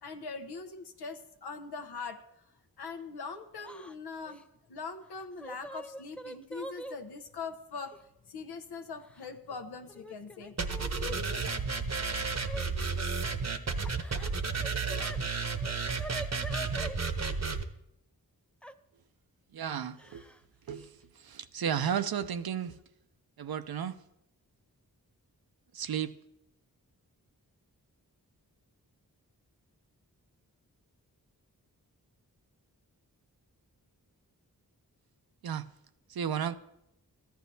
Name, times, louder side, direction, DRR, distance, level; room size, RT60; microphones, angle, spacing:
voice 1, 0.0-2.2 2.8-8.0 8.3-10.6 11.0-11.4, left 4 dB, 85° left, 7 dB, 0.8 m, -42 dB
Yell / Crying sobbing, 3.6-3.9 4.2-4.4 5.2-7.0 7.9-8.0 9.0-9.6 9.9-11.2 12.4-12.7 13.8-15.2 15.5-17.0 18.6-18.7 20.0-20.4 20.7-20.8 22.0-22.1 22.5-22.8, right 1 dB, 5° left, 0.5 m, -44 dB
sound 1, 10.6-17.6, right 4 dB, 45° right, 0.9 m, -32 dB
voice 2, 19.5-20.3 20.7-22.8 23.4-24.0 25.7-26.1 35.4-35.7 36.1-36.5, right 8 dB, 70° right, 11 dB, 0.6 m, -33 dB
14.0 x 10.5 x 2.7 m, 0.83 s
cardioid pair, 40°, 38 cm